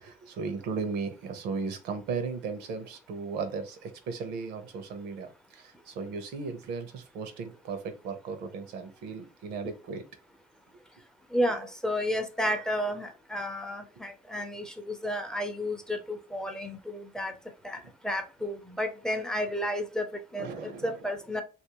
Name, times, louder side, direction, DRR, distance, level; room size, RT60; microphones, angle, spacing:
voice 1, 0.0-10.0 20.4-21.0, right 5 dB, 80° right, 0.7 m, -36 dB
voice 2, 11.3-17.3 17.6-21.4, equal, 5° left, 0.5 m, -32 dB
2.8 x 2.6 x 2.9 m
cardioid pair, 110°, 17 cm